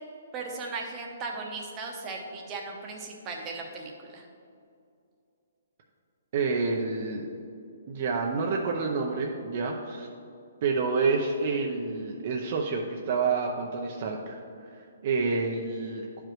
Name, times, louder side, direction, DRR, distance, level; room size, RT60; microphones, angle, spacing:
voice 1, 0.3-4.3, right 3 dB, 20° right, 0 dB, 0.8 m, -37 dB
voice 2, 6.3-7.3 7.9-10.1 10.6-16.2, right 4 dB, 40° right, 1 dB, 0.6 m, -29 dB
10.5 x 5.0 x 3.0 m, 2.5 s
hypercardioid pair, 165°, 0 cm